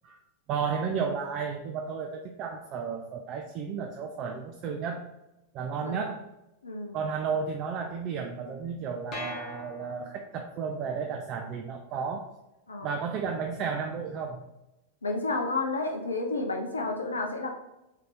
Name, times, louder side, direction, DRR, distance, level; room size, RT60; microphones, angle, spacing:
voice 1, 0.5-5.1 5.5-6.2 6.9-12.3 12.8-14.4, right 6 dB, 35° right, 3 dB, 0.3 m, -33 dB
voice 2, 6.6-7.0 12.7-12.9 15.0-17.5, left 3 dB, 75° left, 2 dB, 0.4 m, -31 dB
sound 1, 9.1-10.5, left 3 dB, 35° left, 0.9 m, -41 dB
3.8 x 2.7 x 3.5 m, 0.96 s
figure-of-eight pair, 90°, 0 cm